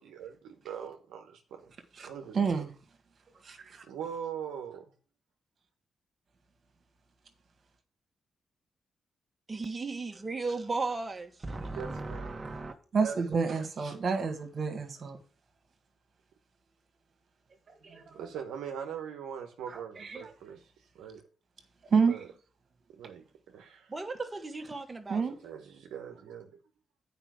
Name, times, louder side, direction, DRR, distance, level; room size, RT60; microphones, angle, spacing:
voice 1, 0.0-1.7 2.0-2.6 3.9-4.8 11.8-12.3 13.0-13.2 13.5-13.6 18.1-21.2 22.1-22.3 22.9-23.9 25.4-26.5, right 8 dB, 85° right, 1.1 m, -41 dB
voice 2, 2.3-2.7 3.4-3.8 12.9-15.2 17.7-18.2 20.0-20.2 21.9-22.2 25.1-25.4, right 5 dB, 60° right, 1.8 m, -29 dB
voice 3, 9.5-12.7 23.9-25.2, right 3 dB, 30° right, 1.5 m, -36 dB
9.0 x 5.2 x 6.2 m
supercardioid pair, 45°, 0 cm